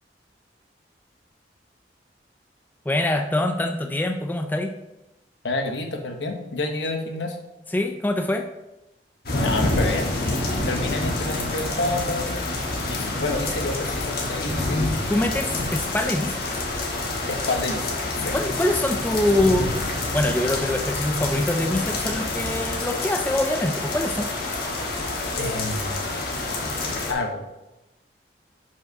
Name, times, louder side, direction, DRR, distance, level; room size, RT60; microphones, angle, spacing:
voice 1, 2.9-4.7 7.7-8.5 15.1-16.4 18.3-19.7 20.1-24.3, left 1 dB, 10° left, 5 dB, 0.3 m, -24 dB
voice 2, 5.4-7.4 9.4-10.1 10.6-12.4 12.8-14.9 17.3-17.9 18.2-18.3 25.4-26.0 27.1-27.4, left 2 dB, 80° left, 4 dB, 1.0 m, -28 dB
sound 1, 9.3-27.1, left 2 dB, 55° left, 1.4 m, -27 dB
5.3 x 4.9 x 5.3 m, 0.98 s
head